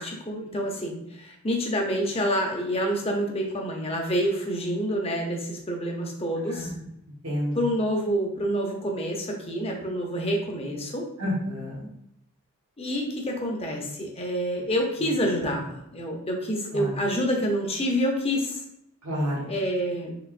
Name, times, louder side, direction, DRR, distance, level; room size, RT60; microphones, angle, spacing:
voice 1, 0.0-6.7 7.5-11.0 12.8-18.6 19.5-20.1, equal, 30° left, 1 dB, 0.7 m, -27 dB
voice 2, 7.2-7.6 11.2-11.8 15.0-15.5 16.7-16.9 19.0-19.5, equal, 85° right, -6 dB, 1.5 m, -30 dB
6.0 x 3.0 x 2.5 m, 0.77 s
head